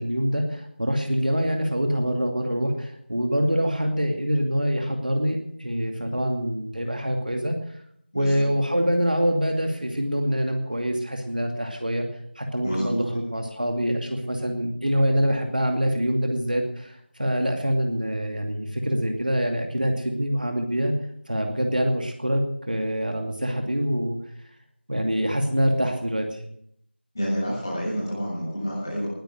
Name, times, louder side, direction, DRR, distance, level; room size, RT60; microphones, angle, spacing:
voice 1, 0.0-7.6 8.1-12.0 12.3-20.9 21.3-24.2 24.9-26.4, equal, 50° right, 3 dB, 2.5 m, -25 dB
voice 2, 12.6-13.0 27.1-29.1, equal, 15° left, -6 dB, 7.1 m, -28 dB
20.0 x 10.0 x 6.4 m, 0.69 s
figure-of-eight pair, 175°, 6 cm